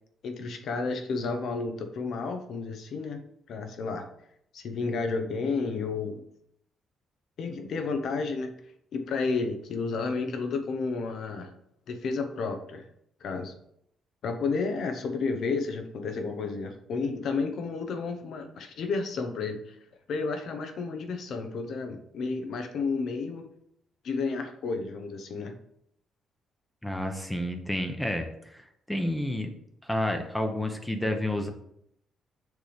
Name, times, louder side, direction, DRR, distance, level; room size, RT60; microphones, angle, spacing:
voice 1, 0.2-3.2 3.5-4.1 4.5-6.2 7.4-8.5 8.9-11.5 11.9-12.8 13.2-13.5 14.2-19.7 20.1-23.4 24.0-25.5, left 4 dB, 65° left, 5 dB, 1.0 m, -31 dB
voice 2, 26.8-29.5 29.8-31.5, left 1 dB, 5° left, 5 dB, 0.8 m, -30 dB
6.5 x 3.4 x 5.0 m, 0.73 s
cardioid pair, 90°, 0 cm